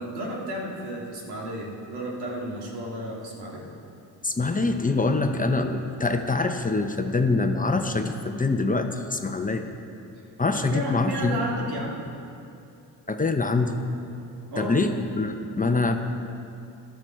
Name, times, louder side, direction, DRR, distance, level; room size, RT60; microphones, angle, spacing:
voice 1, 0.0-3.7 10.5-12.0 14.5-14.8, right 1 dB, 75° right, -2 dB, 2.8 m, -32 dB
voice 2, 4.2-9.7 10.4-11.4 13.1-13.7 14.6-15.9, left 3 dB, 20° left, 5 dB, 1.0 m, -24 dB
14.0 x 12.0 x 4.6 m, 2.7 s
supercardioid pair, 70°, 40 cm